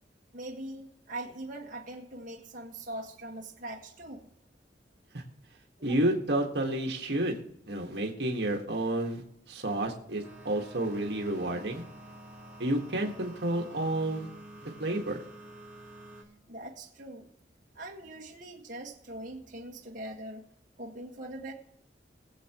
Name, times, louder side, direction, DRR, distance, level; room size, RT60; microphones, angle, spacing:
voice 1, 0.3-4.3 5.9-6.0 16.5-17.3 17.7-20.4 20.8-21.5, right 1 dB, 45° right, -2 dB, 1.7 m, -42 dB
voice 2, 5.8-7.4 7.7-11.8 12.6-14.3 14.6-15.2, right 1 dB, 70° right, 2 dB, 1.7 m, -30 dB
sound 1, 10.2-16.2, right 1 dB, 10° right, 1.6 m, -49 dB
21.5 x 7.8 x 3.1 m, 0.77 s
head